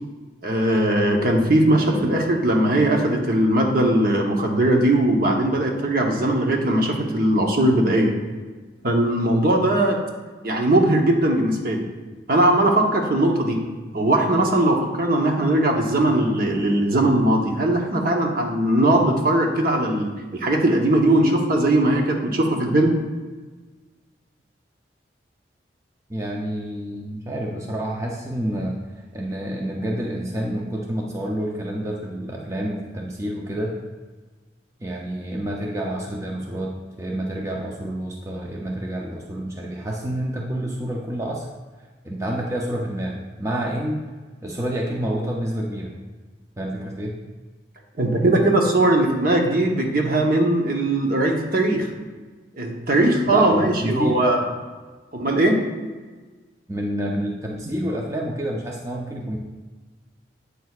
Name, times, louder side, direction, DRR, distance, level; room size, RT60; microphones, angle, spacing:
voice 1, 0.4-8.1 8.8-10.0 10.4-11.8 12.3-13.6 13.9-22.9 48.0-51.9 52.6-54.4 55.1-55.6, right 1 dB, 55° right, 1 dB, 0.9 m, -19 dB
voice 2, 26.1-28.8 29.1-33.7 34.8-36.7 37.0-41.5 42.0-44.1 44.4-45.9 46.6-47.1 53.3-54.2 56.7-59.4, right 1 dB, 15° right, -1 dB, 0.5 m, -28 dB
8.2 x 6.1 x 2.4 m, 1.3 s
head